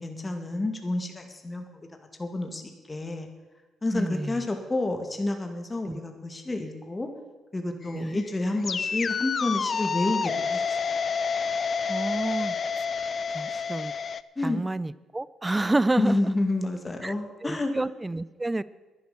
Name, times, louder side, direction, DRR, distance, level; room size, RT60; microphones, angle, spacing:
voice 1, 0.0-1.6 2.2-3.3 3.8-7.1 7.5-10.8 13.5-13.6 14.4-14.6 16.0-17.7, left 2 dB, 20° left, 4 dB, 2.0 m, -29 dB
voice 2, 3.9-4.5 5.9-6.0 7.9-8.2 11.9-12.9 13.3-13.9 14.4-16.2 17.0-17.1 17.4-18.6, right 2 dB, 15° right, 18 dB, 0.5 m, -29 dB
sound 1, 7.8-14.2, left 5 dB, 45° left, 0.5 m, -29 dB
11.0 x 10.5 x 7.1 m, 1.2 s
supercardioid pair, 75°, 0 cm